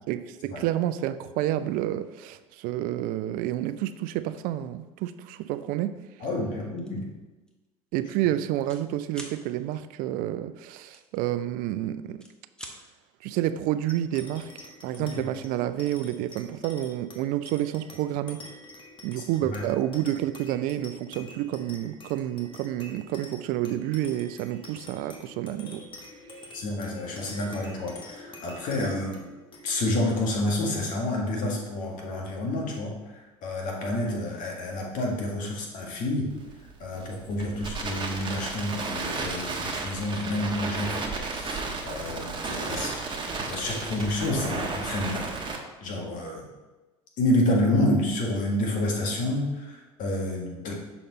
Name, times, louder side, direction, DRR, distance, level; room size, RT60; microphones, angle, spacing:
voice 1, 0.1-6.0 7.9-12.2 13.2-18.5 19.0-25.8, right 13 dB, 60° right, 0.4 m, -29 dB
voice 2, 6.2-7.0 15.0-15.2 19.2-19.3 19.5-19.6 26.5-29.2 29.6-36.3 36.8-43.0 43.4-45.4 45.8-46.5 47.2-50.7, left 1 dB, 55° left, 1.8 m, -29 dB
sound 1, 6.8-7.0 7.5-7.7 7.9-8.8 9.1-9.4 10.9-11.7 12.1-12.8, equal, 5° left, 1.1 m, -44 dB
sound 2, 13.9-32.7, left 2 dB, 30° left, 1.4 m, -48 dB
Crackle, 36.3-45.6, right 3 dB, 30° right, 1.2 m, -33 dB
6.6 x 4.3 x 4.1 m
hypercardioid pair, 80°, 16 cm